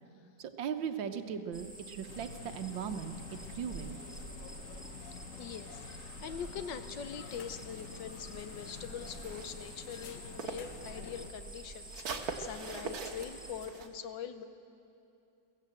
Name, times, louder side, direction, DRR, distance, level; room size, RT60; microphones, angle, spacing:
voice 1, 0.4-4.0, right 7 dB, 75° right, 8 dB, 1.7 m, -38 dB
sound 1, 1.5-13.7, right 2 dB, 5° right, 1.3 m, -49 dB
sound 2, 2.1-11.3, left 7 dB, 55° left, 1.0 m, -49 dB
voice 2, 5.4-14.5, left 7 dB, 70° left, 10 dB, 1.5 m, -43 dB
sound 3, 7.2-10.8 11.1-13.9, right 5 dB, 55° right, 1.6 m, -43 dB
23.0 x 16.0 x 7.8 m, 2.7 s
omnidirectional pair, 2.1 m